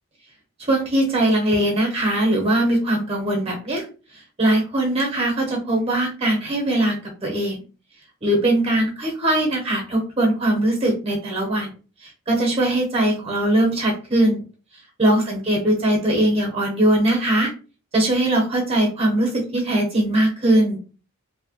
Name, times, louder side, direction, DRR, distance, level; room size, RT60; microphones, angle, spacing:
voice 1, 0.6-3.9 4.4-7.6 8.2-11.7 12.0-14.4 15.0-17.5 17.9-20.8, right 1 dB, 30° right, 1 dB, 0.6 m, -20 dB
2.6 x 2.1 x 2.8 m, 0.35 s
head